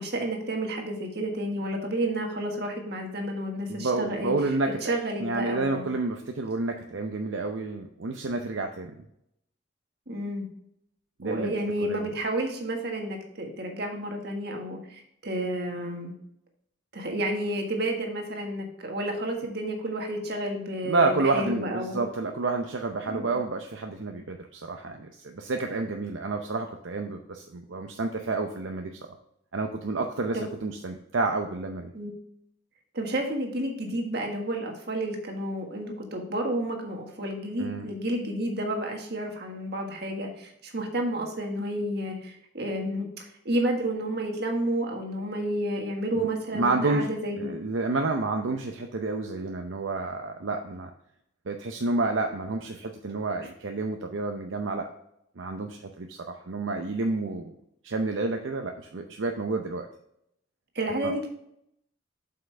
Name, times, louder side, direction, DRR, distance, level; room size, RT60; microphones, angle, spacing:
voice 1, 0.0-4.3 4.8-5.8 10.1-10.5 11.2-16.1 16.9-22.0 23.1-23.3 30.3-30.4 31.9-32.1 32.9-47.5 60.7-61.3, right 1 dB, 55° right, 2 dB, 1.6 m, -31 dB
voice 2, 3.7-4.9 5.2-8.9 11.2-11.5 11.8-12.1 20.9-28.9 29.5-31.9 37.6-37.9 46.1-46.3 46.5-47.1 47.4-50.9 51.5-54.9 55.4-57.5 57.8-59.9 61.0-61.1, right 3 dB, 75° right, 4 dB, 0.6 m, -29 dB
7.6 x 5.7 x 3.4 m, 0.76 s
head